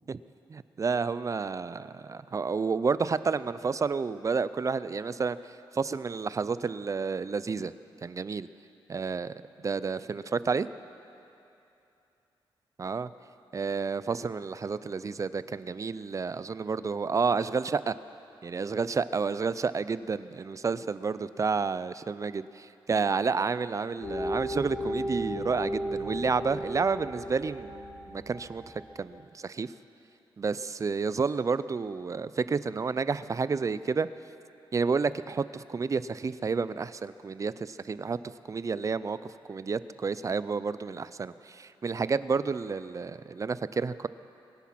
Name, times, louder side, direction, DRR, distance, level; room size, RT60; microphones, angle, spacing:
voice 1, 0.5-5.4 5.7-7.7 8.0-8.5 8.9-9.3 9.6-10.7 12.8-13.1 13.5-17.9 18.4-27.7 28.1-29.7 30.4-34.1 34.7-38.2 38.5-44.1, right 5 dB, 35° right, 15 dB, 0.4 m, -30 dB
sound 1, 24.0-29.1, equal, 60° left, 4.5 m, -35 dB
23.5 x 10.0 x 5.9 m, 2.8 s
wide cardioid pair, 100°, 9 cm